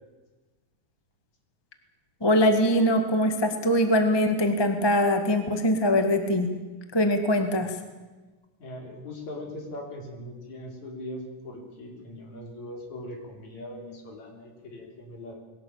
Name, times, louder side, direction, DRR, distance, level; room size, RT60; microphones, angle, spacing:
voice 1, 2.2-6.5 6.9-7.8, left 1 dB, 15° left, 6 dB, 1.0 m, -22 dB
voice 2, 8.6-15.4, left 1 dB, 55° left, 2 dB, 5.1 m, -40 dB
21.5 x 17.5 x 8.7 m, 1.2 s
omnidirectional pair, 3.9 m